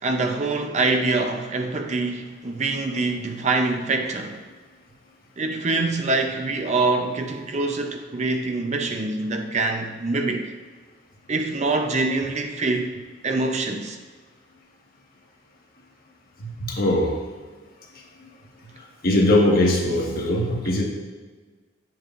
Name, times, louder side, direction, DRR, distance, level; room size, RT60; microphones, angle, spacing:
voice 1, 0.0-4.4 5.4-10.5 11.3-13.0 13.2-14.0, right 3 dB, 40° right, 4 dB, 0.6 m, -25 dB
voice 2, 16.4-17.1 19.0-20.8, left 1 dB, 50° left, -1 dB, 1.4 m, -20 dB
8.3 x 7.8 x 2.5 m, 1.4 s
head